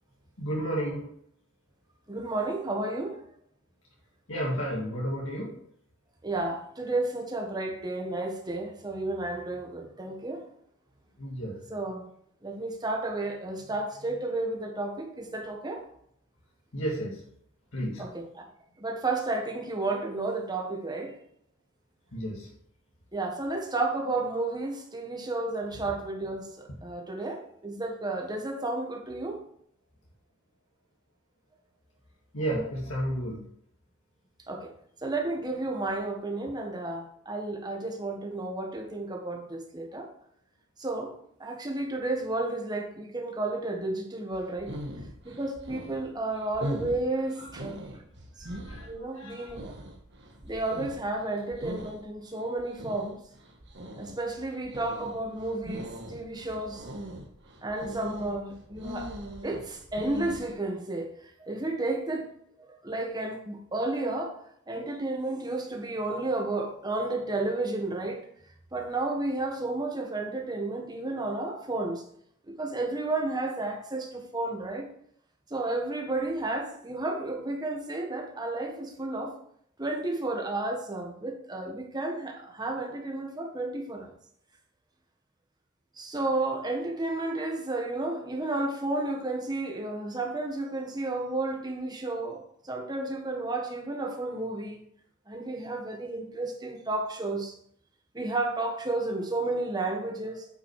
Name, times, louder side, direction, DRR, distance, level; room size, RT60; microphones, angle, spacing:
voice 1, 0.4-1.1 4.3-5.6 11.2-11.5 16.7-17.3 17.7-18.1 22.1-22.5 32.3-33.4 48.5-48.9 49.1-49.5, right 1 dB, 70° left, 2.0 m, -32 dB
voice 2, 2.1-3.2 6.2-10.4 11.7-12.0 12.4-15.8 18.0-18.5 18.8-21.2 23.1-29.4 34.5-34.7 35.0-40.1 40.8-41.1 41.4-44.8 45.2-47.8 48.4-48.5 48.8-49.7 50.4-53.2 54.0-56.9 57.6-59.1 59.4-62.3 62.6-64.4 64.7-68.2 68.7-72.0 72.5-74.9 75.5-79.3 79.8-84.1 86.0-94.8 95.3-97.5 98.1-100.5, right 2 dB, 20° right, 1.5 m, -32 dB
sound 1, 44.3-60.5, equal, 60° right, 1.5 m, -41 dB
8.9 x 6.1 x 4.9 m
head